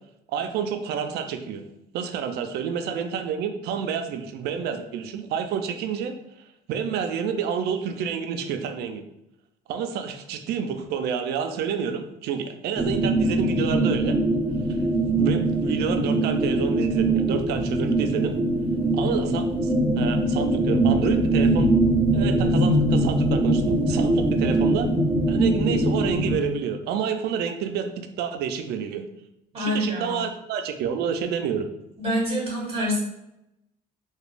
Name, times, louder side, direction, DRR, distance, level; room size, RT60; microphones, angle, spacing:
voice 1, 0.3-1.6 1.9-6.1 6.7-9.0 9.7-14.2 14.7-14.8 15.2-18.4 18.9-21.7 22.1-24.9 25.3-27.9 28.2-29.0 29.5-31.7, right 7 dB, 75° right, 7 dB, 0.4 m, -29 dB
sound 1, 12.8-26.3, right 1 dB, 10° right, 0.4 m, -22 dB
voice 2, 29.5-30.2 32.0-33.0, equal, 35° right, -4 dB, 1.4 m, -26 dB
3.0 x 2.3 x 2.5 m, 0.86 s
cardioid pair, 110°, 17 cm